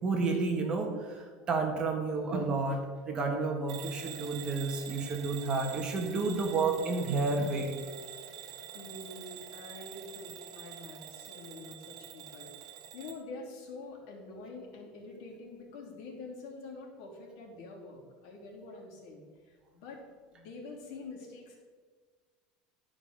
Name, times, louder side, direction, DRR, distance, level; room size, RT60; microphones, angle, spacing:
voice 1, 0.0-2.8 3.1-7.8, right 3 dB, 25° right, 2 dB, 1.4 m, -31 dB
Bell / Alarm, 3.7-13.2, right 10 dB, 80° right, 1.0 m, -46 dB
voice 2, 8.7-12.5 12.9-20.0 20.3-21.6, left 3 dB, 65° left, -2 dB, 2.8 m, -46 dB
12.0 x 5.1 x 6.3 m, 1.5 s
cardioid pair, 165°, 3 cm